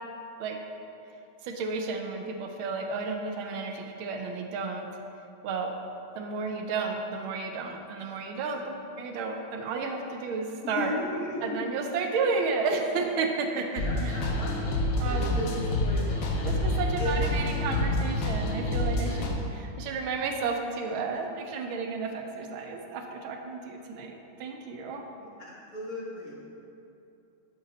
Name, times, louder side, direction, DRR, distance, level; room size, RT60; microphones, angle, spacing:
voice 1, 1.4-4.9 5.4-5.8 6.1-10.9 11.4-14.2 15.0-15.3 16.4-25.1, right 4 dB, 90° right, 4 dB, 1.5 m, -32 dB
voice 2, 10.6-11.7 13.7-14.6 15.1-16.6 17.0-17.1 17.9-18.1 25.2-26.3, left 1 dB, 50° left, -5 dB, 1.9 m, -36 dB
sound 1, 13.8-19.3, left 1 dB, 70° left, 1.5 m, -28 dB
7.9 x 6.4 x 4.0 m, 2.7 s
omnidirectional pair, 2.2 m